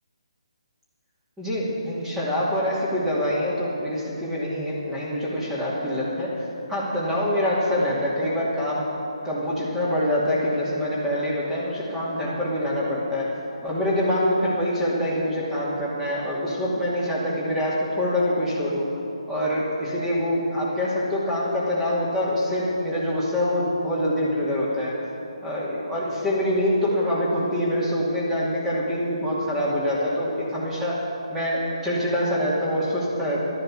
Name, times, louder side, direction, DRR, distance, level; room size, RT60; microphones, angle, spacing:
voice 1, 1.4-8.9 9.2-13.3 13.6-18.8 19.3-24.9 25.4-31.0 31.3-33.6, left 1 dB, 5° right, -8 dB, 2.6 m, -25 dB
12.5 x 12.0 x 6.3 m, 3.0 s
hypercardioid pair, 150°, 3 cm